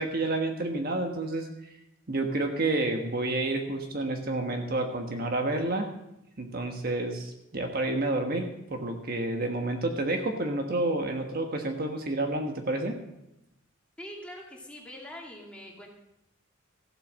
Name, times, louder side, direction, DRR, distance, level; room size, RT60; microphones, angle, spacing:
voice 1, 0.0-1.5 2.1-5.9 6.4-13.0, right 2 dB, 45° right, 4 dB, 1.3 m, -29 dB
voice 2, 14.0-15.9, equal, 5° left, -2 dB, 2.4 m, -43 dB
15.0 x 8.0 x 6.3 m, 0.87 s
head